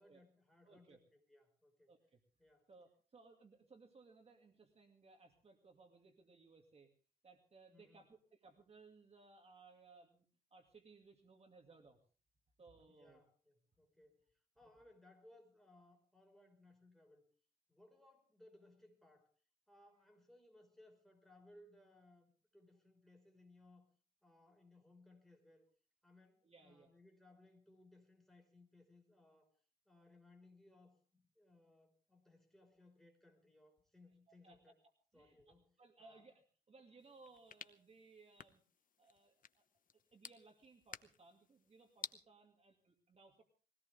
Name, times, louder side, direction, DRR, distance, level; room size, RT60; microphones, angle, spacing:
voice 1, 0.0-1.9 2.4-2.7 7.7-8.0 12.9-14.3 14.5-17.2 17.7-19.3 19.7-23.9 24.2-25.7 26.0-29.6 29.8-34.8 35.1-35.7 36.0-36.3, left 2 dB, ahead, 3 dB, 5.0 m, -65 dB
voice 2, 0.6-1.0 1.9-2.2 2.7-6.9 7.2-10.2 10.5-12.0 12.6-13.2 14.8-14.9 19.9-20.0 26.4-26.9 34.3-34.7 35.1-38.6 39.0-39.6 39.9-43.4, right 3 dB, 40° right, 3 dB, 2.3 m, -63 dB
sound 1, 37.0-42.2, left 7 dB, 55° left, 0.9 m, -54 dB
21.5 x 17.5 x 3.5 m, 0.39 s
wide cardioid pair, 130°, 17 cm